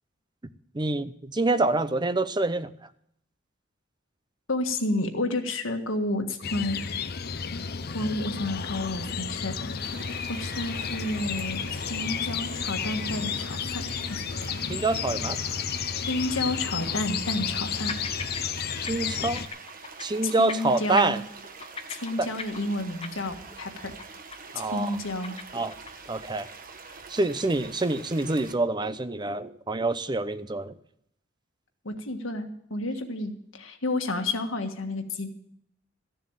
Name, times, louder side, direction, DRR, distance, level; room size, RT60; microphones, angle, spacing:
voice 1, 0.7-2.7 14.7-15.4 18.8-19.4 20.0-21.2 22.2-22.3 24.5-25.0 25.5-25.7 26.1-26.5 27.1-30.7, right 2 dB, 20° right, 12 dB, 0.6 m, -26 dB
voice 2, 4.5-6.8 7.9-9.7 10.3-13.8 14.1-14.2 16.1-18.0 20.2-21.2 21.9-23.9 24.5-25.4 31.8-35.3, left 2 dB, 85° left, 5 dB, 1.7 m, -30 dB
sound 1, 6.4-19.5, left 7 dB, 50° left, 0.6 m, -32 dB
sound 2, 9.8-28.5, right 4 dB, 45° right, 1.2 m, -45 dB
sound 3, 17.3-17.6 17.9-18.4 18.7-18.9 19.2-20.2 20.5-20.7 21.0-23.5 23.8-24.0 24.3-24.7 24.9-26.1, left 4 dB, 30° left, 1.0 m, -38 dB
14.0 x 7.2 x 9.0 m, 0.71 s
head